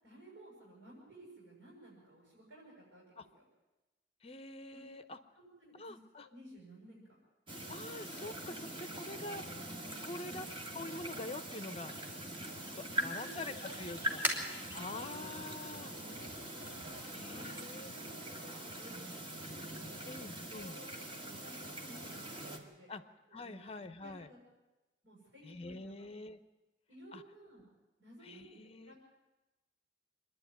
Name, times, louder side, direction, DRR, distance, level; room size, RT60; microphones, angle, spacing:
voice 1, 0.0-3.4 4.7-4.8 5.4-6.0 6.3-7.2 8.4-8.6 10.2-10.4 12.9-13.3 13.5-15.2 15.7-16.0 16.6-22.9 23.3-23.6 24.0-24.4 25.0-26.1 26.9-27.7 28.0-29.1, equal, 70° right, -5 dB, 7.3 m, -56 dB
voice 2, 4.2-5.2 5.7-6.3 7.7-9.4 10.0-10.5 10.7-11.9 12.5-14.5 14.7-15.9 17.1-17.9 20.0-20.8 22.9-23.0 23.3-24.3 25.4-26.4 27.1-27.2 28.2-28.9, left 2 dB, 35° left, 10 dB, 0.9 m, -45 dB
sound 1, 7.5-22.6, right 1 dB, 30° right, 2.0 m, -43 dB
sound 2, 12.3-17.5, equal, 10° right, 3.0 m, -44 dB
25.5 x 11.0 x 9.4 m, 1.1 s
head